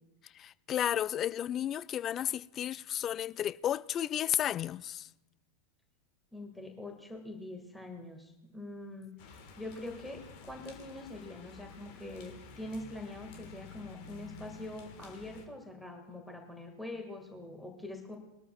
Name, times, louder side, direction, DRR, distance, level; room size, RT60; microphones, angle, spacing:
voice 1, 0.3-5.1, left 11 dB, 30° left, 0.3 m, -33 dB
voice 2, 6.3-9.1 9.5-18.2, left 1 dB, 5° left, 2.2 m, -44 dB
sound 1, 9.2-15.5, left 5 dB, 45° left, 1.9 m, -51 dB
22.5 x 13.0 x 2.5 m
figure-of-eight pair, 90°, 0 cm